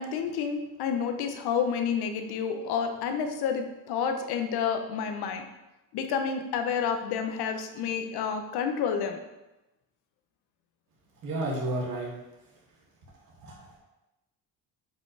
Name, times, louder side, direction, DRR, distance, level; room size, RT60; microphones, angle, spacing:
voice 1, 0.0-5.4 5.9-9.2, left 6 dB, 80° left, 6 dB, 0.9 m, -29 dB
voice 2, 11.2-12.1 13.1-13.8, right 1 dB, 65° right, -3 dB, 2.5 m, -32 dB
8.0 x 5.2 x 3.3 m, 1.0 s
cardioid pair, 115°, 38 cm